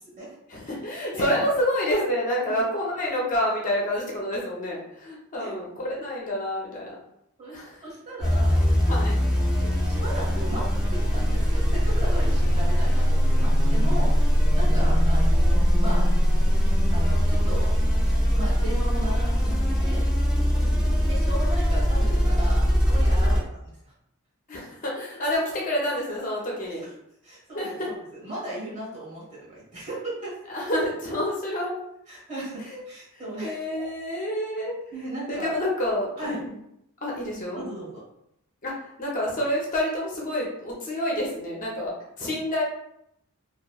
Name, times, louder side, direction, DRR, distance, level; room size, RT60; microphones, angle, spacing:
voice 1, 0.5-7.0 7.5-7.8 8.9-9.1 14.7-14.9 20.5-21.3 23.2-23.4 24.5-26.8 27.5-27.9 30.5-31.7 32.6-32.8 33.1-34.7 35.3-36.6 37.0-37.6 38.6-42.6, left 1 dB, 35° left, -3 dB, 0.5 m, -28 dB
voice 2, 1.1-1.4 2.4-2.5 5.4-5.6 7.4-8.6 9.5-16.1 16.6-17.7 18.3-20.1 21.1-23.4 23.8-23.9 25.3-25.4 26.8-26.9 27.2-30.3 32.1-33.5 34.9-35.5 36.2-36.4 37.5-38.0, right 1 dB, 30° right, -8 dB, 1.3 m, -36 dB
sound 1, 8.2-23.4, equal, ahead, 1.2 m, -21 dB
2.9 x 2.3 x 2.2 m, 0.78 s
head